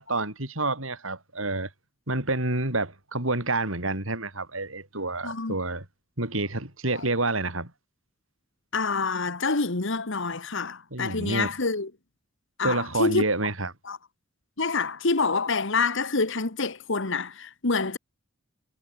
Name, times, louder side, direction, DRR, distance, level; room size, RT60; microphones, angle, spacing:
voice 1, 0.0-1.7 2.1-5.8 6.2-7.7 10.9-11.5 12.6-13.7, right 2 dB, 80° right, 7.1 m, -28 dB
voice 2, 5.2-5.5 6.9-7.1 8.7-11.9 12.6-13.2 13.8-14.0 14.6-18.0, left 4 dB, 65° left, 1.7 m, -27 dB
head